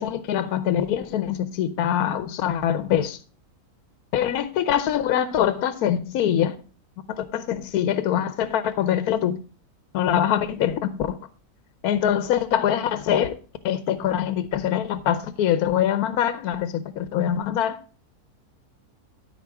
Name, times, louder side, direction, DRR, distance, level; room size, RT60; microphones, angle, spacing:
voice 1, 0.0-3.2 4.1-6.6 7.1-9.4 9.9-11.2 11.8-13.4 13.6-17.8, left 10 dB, 75° left, 1.2 m, -24 dB
13.0 x 4.4 x 4.8 m
omnidirectional pair, 1.6 m